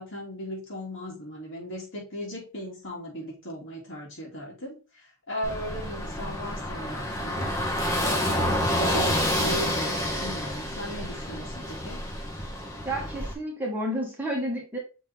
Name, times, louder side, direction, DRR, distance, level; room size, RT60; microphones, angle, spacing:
voice 1, 0.0-7.6 8.0-12.0, equal, 60° left, -3 dB, 3.0 m, -37 dB
Car passing by / Engine, 5.4-13.3, equal, 15° left, 1.1 m, -29 dB
voice 2, 12.8-14.8, right 1 dB, 10° right, -3 dB, 2.0 m, -30 dB
6.2 x 4.3 x 3.5 m, 0.31 s
head